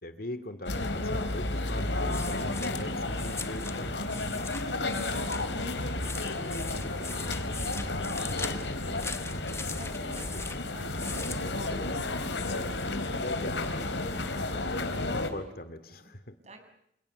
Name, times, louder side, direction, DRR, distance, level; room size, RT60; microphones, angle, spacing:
voice 1, 0.0-1.9 2.3-4.1 9.3-9.4 10.3-10.4 13.2-13.8 14.5-16.4, left 1 dB, 55° left, 12 dB, 2.6 m, -42 dB
sound 1, 0.7-15.3, left 2 dB, 85° left, 3.9 m, -32 dB
sound 2, 1.3-12.2, left 4 dB, 15° left, 1.3 m, -42 dB
voice 2, 9.7-11.5 12.6-13.3 15.9-16.0 16.4-16.6, right 2 dB, 40° right, 6 dB, 7.2 m, -54 dB
29.0 x 29.0 x 6.9 m, 0.78 s
head